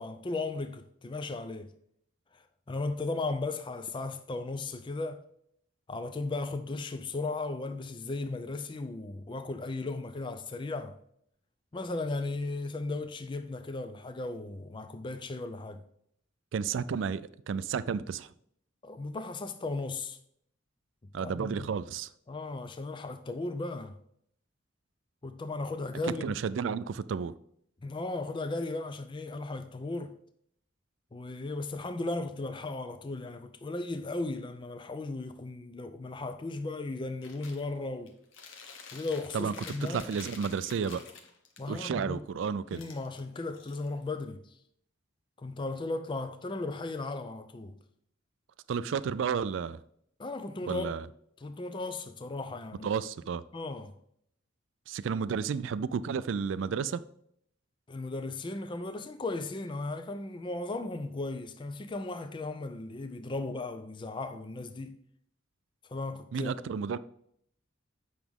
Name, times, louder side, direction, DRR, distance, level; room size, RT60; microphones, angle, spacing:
voice 1, 0.0-1.7 2.3-5.2 5.9-11.0 11.7-15.8 18.8-20.2 21.0-21.7 22.3-24.0 25.2-26.4 27.8-30.2 31.1-38.1 38.9-40.0 41.6-42.3 42.7-44.6 45.4-47.8 50.2-51.0 51.4-52.9 53.5-54.0 57.9-65.0 65.9-66.5, left 2 dB, 25° left, 0.4 m, -36 dB
voice 2, 16.5-18.3 21.1-22.1 26.2-27.3 39.3-39.5 39.9-41.1 41.7-42.8 48.7-49.8 50.7-51.1 52.8-53.4 54.9-57.0 66.3-67.0, right 6 dB, 75° right, 0.3 m, -32 dB
Chewing mastication, 37.2-37.6 38.1-41.6 42.7-44.2, left 5 dB, 90° left, 1.1 m, -49 dB
8.0 x 6.0 x 3.5 m
head